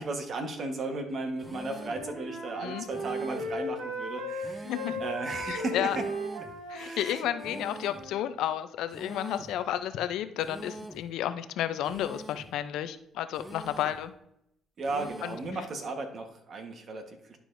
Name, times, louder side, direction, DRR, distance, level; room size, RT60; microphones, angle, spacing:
voice 1, 0.0-4.7 5.0-6.0 6.7-7.2 14.8-17.4, right 3 dB, 55° right, 5 dB, 1.2 m, -35 dB
Wind instrument woodwind instrument, 1.3-8.1, equal, 85° right, 2.1 m, -37 dB
sound 1, 1.4-2.1 2.9-3.6 4.4-5.1 5.9-6.6 7.4-8.1 8.9-9.6 10.4-11.1 11.8-12.6 13.3-14.1 14.8-15.6, right 1 dB, 5° right, 0.7 m, -45 dB
voice 2, 4.6-5.0 5.5-6.0 6.7-14.1 15.2-15.3, left 11 dB, 80° left, 11 dB, 0.4 m, -32 dB
11.0 x 4.6 x 2.6 m, 0.78 s
cardioid pair, 85°, 0 cm